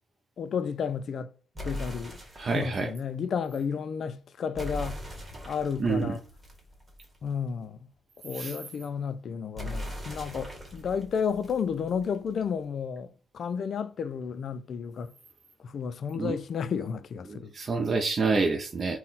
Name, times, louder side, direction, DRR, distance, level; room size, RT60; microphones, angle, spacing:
voice 1, 0.4-1.3 1.6-2.2 2.5-5.0 5.5-6.2 7.2-7.9 8.2-15.1 15.6-17.5, left 6 dB, 55° left, 0.3 m, -32 dB
sound 1, 1.6-2.8 4.6-7.3 9.6-12.3, left 1 dB, 20° right, 1.3 m, -40 dB
voice 2, 2.3-2.9 5.8-6.2 8.3-8.5 16.1-16.4 17.3-19.0, right 4 dB, 40° right, 0.5 m, -28 dB
3.9 x 2.1 x 3.9 m
cardioid pair, 90°, 0 cm